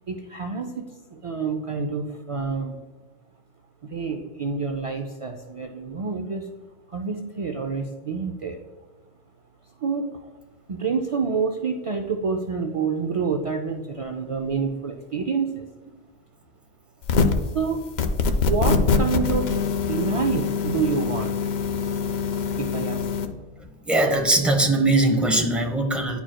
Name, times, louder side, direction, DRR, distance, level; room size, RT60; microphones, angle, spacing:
voice 1, 0.1-2.8 3.9-6.5 6.9-8.6 9.8-10.3 10.7-15.6 17.4-17.8 18.4-21.4 22.6-23.1, right 5 dB, 60° right, 4 dB, 0.3 m, -28 dB
sound 1, 17.0-17.5 18.0-23.3, left 5 dB, 70° left, 0.8 m, -24 dB
voice 2, 23.9-26.2, right 2 dB, ahead, 2 dB, 0.6 m, -20 dB
10.0 x 4.6 x 2.2 m, 1.3 s
omnidirectional pair, 1.2 m